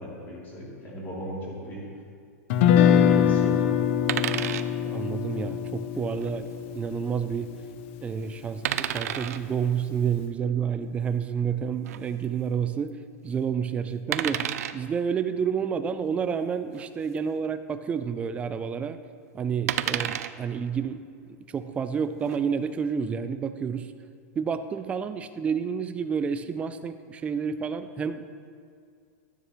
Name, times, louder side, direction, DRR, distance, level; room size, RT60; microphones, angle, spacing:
voice 1, 0.0-1.9 2.7-3.8, equal, 20° left, -5 dB, 2.9 m, -36 dB
Guitar, 2.5-8.6, left 9 dB, 50° left, 0.5 m, -24 dB
sound 1, 4.1-4.7 6.1-6.3 8.7-9.4 11.9-12.0 14.1-14.8 16.7-16.9 17.2-17.3 19.7-20.3 22.0-22.4, right 11 dB, 75° right, 0.4 m, -30 dB
voice 2, 4.7-6.5 6.7-7.5 8.0-13.0 13.2-19.0 19.3-21.1 21.5-23.9 24.4-28.2, right 7 dB, 15° right, 10 dB, 0.4 m, -29 dB
12.5 x 9.6 x 3.1 m, 2.3 s
supercardioid pair, 150°, 8 cm